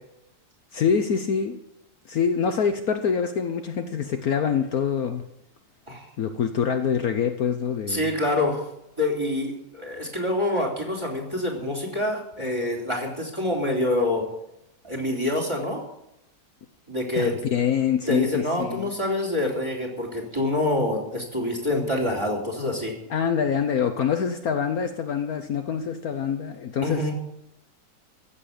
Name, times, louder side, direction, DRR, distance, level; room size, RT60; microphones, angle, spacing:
voice 1, 0.7-1.6 2.1-5.2 6.2-8.1 17.2-18.9 23.1-27.1, left 7 dB, 60° left, 7 dB, 1.3 m, -25 dB
voice 2, 7.9-8.6 9.0-14.3 14.8-15.8 16.9-17.4 18.1-23.0 26.8-27.1, left 1 dB, 15° right, 0 dB, 3.5 m, -26 dB
15.5 x 7.4 x 8.5 m, 0.83 s
omnidirectional pair, 1.8 m